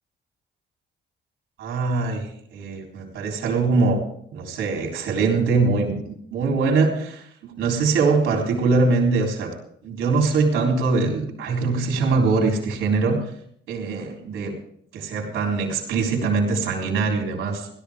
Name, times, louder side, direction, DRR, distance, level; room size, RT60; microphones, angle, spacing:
voice 1, 1.6-4.0 4.3-9.5 9.8-13.3 13.7-14.6 14.9-17.7, right 4 dB, 85° right, 1 dB, 3.7 m, -22 dB
17.0 x 13.0 x 3.6 m, 0.68 s
cardioid pair, 90°, 20 cm